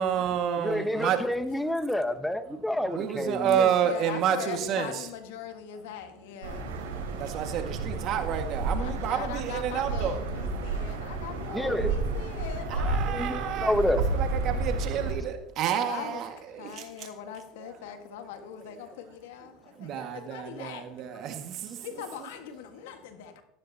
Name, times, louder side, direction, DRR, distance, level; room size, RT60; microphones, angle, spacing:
voice 1, 0.0-1.2 1.9-2.1 2.8-5.1 7.2-10.2 11.5-12.0 12.7-13.7 14.1-17.1 19.8-21.8, right 9 dB, 55° right, 5 dB, 1.8 m, -30 dB
voice 2, 0.6-3.7 11.5-11.9 13.0-14.0 15.3-15.4, left 1 dB, 5° left, 10 dB, 1.2 m, -29 dB
voice 3, 3.8-6.8 8.7-13.3 15.7-21.0 21.8-23.4, left 9 dB, 75° left, 6 dB, 1.7 m, -41 dB
sound 1, 6.4-15.1, right 3 dB, 85° right, 5.5 m, -31 dB
15.0 x 14.5 x 2.9 m, 0.80 s
hypercardioid pair, 80°, 0 cm